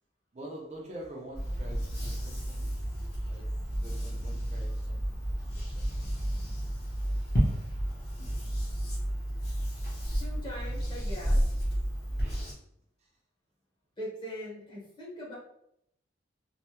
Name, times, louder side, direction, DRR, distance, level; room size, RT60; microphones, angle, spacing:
voice 1, 0.3-5.2 5.5-5.9 8.3-8.4 9.7-9.9, right 1 dB, 35° right, -1 dB, 0.5 m, -47 dB
sound 1, 1.3-12.5, equal, 50° left, 1.2 m, -31 dB
voice 2, 10.0-11.6 14.0-15.4, equal, 25° left, -6 dB, 1.0 m, -41 dB
3.2 x 2.1 x 2.9 m, 0.75 s
head